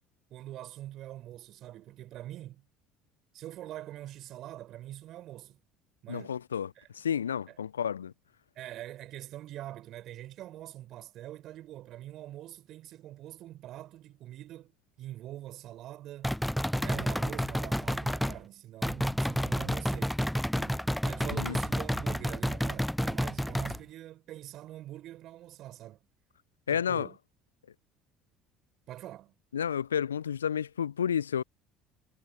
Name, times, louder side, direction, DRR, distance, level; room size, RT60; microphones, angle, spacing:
voice 1, 0.3-2.6 3.3-5.6 6.0-6.4 6.7-6.9 7.5-7.6 8.5-14.7 15.0-16.4 16.8-20.2 20.5-26.0 26.7-27.2 28.9-29.3, right 13 dB, 55° right, 4.8 m, -44 dB
voice 2, 6.1-8.1 21.3-21.6 26.7-27.1 29.5-31.4, left 8 dB, 80° left, 0.3 m, -31 dB
sound 1, 16.2-18.4 18.8-23.8, equal, ahead, 0.4 m, -30 dB
figure-of-eight pair, 60°, 0 cm